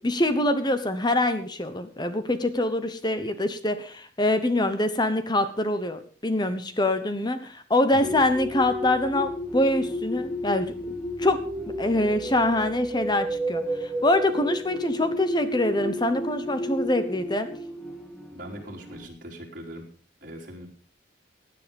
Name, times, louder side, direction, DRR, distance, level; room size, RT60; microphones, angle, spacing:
voice 1, 0.0-10.7 11.2-11.4 11.8-17.5, left 1 dB, 20° left, 10 dB, 1.0 m, -24 dB
sound 1, 8.0-19.1, equal, ahead, 1.8 m, -32 dB
voice 2, 18.3-19.9 20.2-20.7, equal, 45° right, -2 dB, 3.6 m, -41 dB
16.5 x 9.9 x 5.2 m, 0.43 s
head